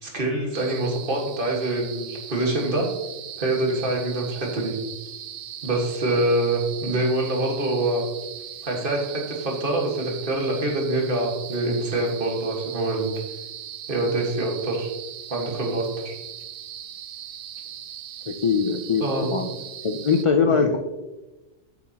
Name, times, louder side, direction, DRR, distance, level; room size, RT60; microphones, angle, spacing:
voice 1, 0.0-2.9 3.4-4.7 5.6-8.1 8.6-13.1 13.9-14.9 15.3-16.1 19.0-19.4 20.5-20.7, right 2 dB, 45° right, 0 dB, 1.9 m, -25 dB
sound 1, 0.5-20.3, right 10 dB, 80° right, 1.0 m, -39 dB
voice 2, 18.3-19.5 19.8-20.8, left 5 dB, 50° left, 5 dB, 0.3 m, -22 dB
8.4 x 8.1 x 2.9 m, 1.1 s
omnidirectional pair, 1.3 m